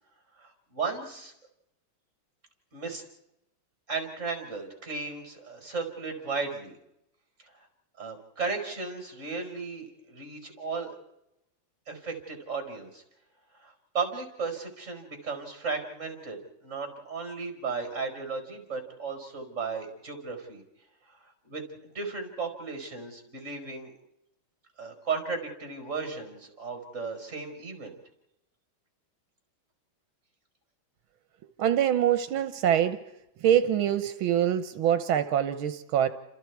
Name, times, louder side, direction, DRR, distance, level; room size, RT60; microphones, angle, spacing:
voice 1, 0.4-1.3 2.7-3.0 3.9-6.8 8.0-11.0 11.9-13.0 13.5-20.6 21.2-23.9 24.8-28.0, right 4 dB, 35° right, 5 dB, 5.3 m, -35 dB
voice 2, 31.6-33.0 33.4-36.1, right 10 dB, 85° right, 9 dB, 1.9 m, -24 dB
30.0 x 26.0 x 4.7 m, 0.84 s
omnidirectional pair, 2.2 m